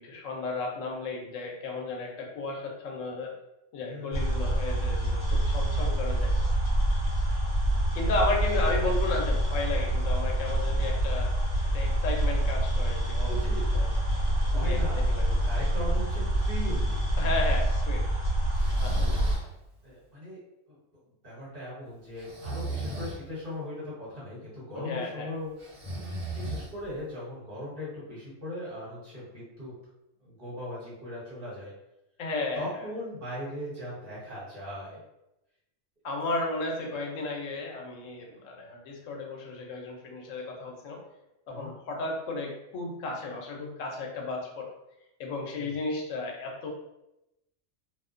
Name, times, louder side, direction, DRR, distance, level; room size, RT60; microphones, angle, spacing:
voice 1, 0.0-3.3 3.7-6.3 8.0-11.3 11.7-13.3 13.7-13.9 14.5-15.2 17.2-18.1 18.8-19.2 24.7-25.3 32.2-32.8 36.0-41.0 41.5-44.7 45.2-46.7, left 3 dB, 80° left, 0 dB, 0.9 m, -34 dB
voice 2, 3.8-4.4 7.6-7.9 13.3-13.9 14.2-17.2 19.2-19.3 19.8-20.4 20.7-20.8 21.2-25.5 26.3-29.7 30.2-31.7 32.5-35.0 41.5-41.7 45.5-45.8, left 1 dB, 45° right, -9 dB, 1.2 m, -39 dB
sound 1, 4.1-19.4, right 1 dB, 50° left, 1.1 m, -26 dB
Breathing, 18.5-19.5 22.2-23.2 25.6-27.0, right 2 dB, 70° right, 1.0 m, -36 dB
2.5 x 2.1 x 2.4 m, 0.88 s
omnidirectional pair, 1.3 m